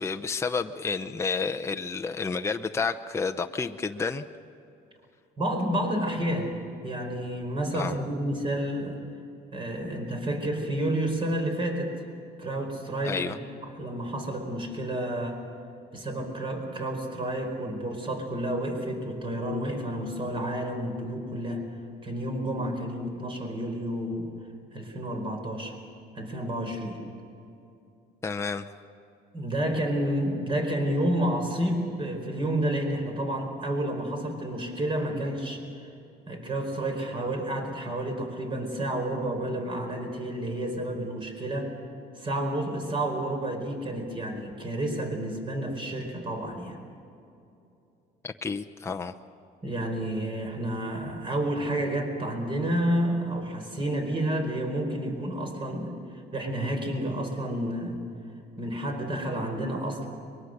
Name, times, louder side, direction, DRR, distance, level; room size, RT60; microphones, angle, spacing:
voice 1, 0.0-4.3 7.7-8.0 13.1-13.4 28.2-28.7 48.2-49.1, left 4 dB, 15° left, 6 dB, 0.7 m, -30 dB
voice 2, 5.4-6.6 6.8-9.0 9.5-12.0 12.4-13.4 13.6-15.4 15.9-21.6 22.0-24.3 24.7-25.8 26.1-27.0 29.3-35.7 36.3-41.7 42.1-46.8 49.6-58.0 58.6-60.1, right 1 dB, 30° right, 4 dB, 4.6 m, -30 dB
23.5 x 22.5 x 6.6 m, 2.7 s
cardioid pair, 110°, 17 cm